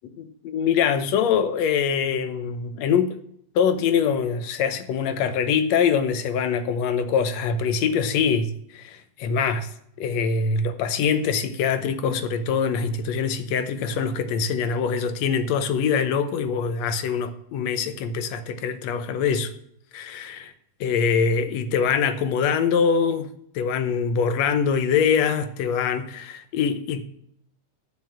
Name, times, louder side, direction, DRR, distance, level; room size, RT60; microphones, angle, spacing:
voice 1, 0.2-3.2 3.6-9.7 10.0-19.5 19.9-20.5 20.8-27.1, left 6 dB, 70° left, 1.9 m, -24 dB
11.0 x 6.1 x 7.2 m
omnidirectional pair, 3.3 m